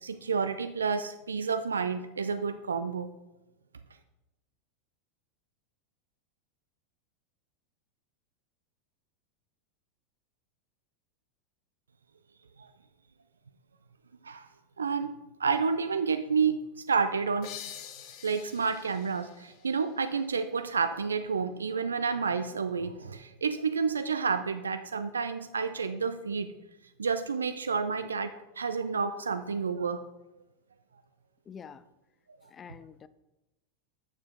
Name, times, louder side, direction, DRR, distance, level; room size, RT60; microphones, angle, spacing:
voice 1, 0.0-3.1 12.6-12.7 14.2-14.5 14.8-17.5 18.2-26.5 27.0-30.1, right 5 dB, 80° right, 11 dB, 0.4 m, -30 dB
sound 1, 17.4-20.8, left 10 dB, 50° left, 0.9 m, -47 dB
voice 2, 31.5-31.8 32.5-33.1, left 7 dB, 25° left, 16 dB, 0.4 m, -47 dB
8.8 x 6.9 x 3.7 m, 0.98 s
figure-of-eight pair, 90°, 0 cm